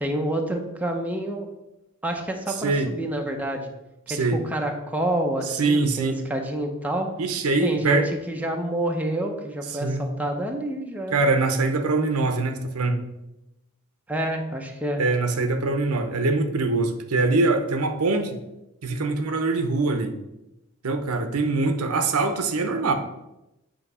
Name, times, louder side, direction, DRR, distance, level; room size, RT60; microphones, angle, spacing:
voice 1, 0.0-1.5 2.0-3.7 4.1-7.1 7.6-11.2 14.1-15.0, right 1 dB, 5° right, 2 dB, 0.7 m, -28 dB
voice 2, 4.1-4.4 5.5-6.2 7.2-8.1 9.8-10.0 11.1-13.0 15.0-18.4 18.8-20.1 20.8-22.9, right 3 dB, 85° right, 7 dB, 0.8 m, -23 dB
8.2 x 3.0 x 5.5 m, 0.92 s
head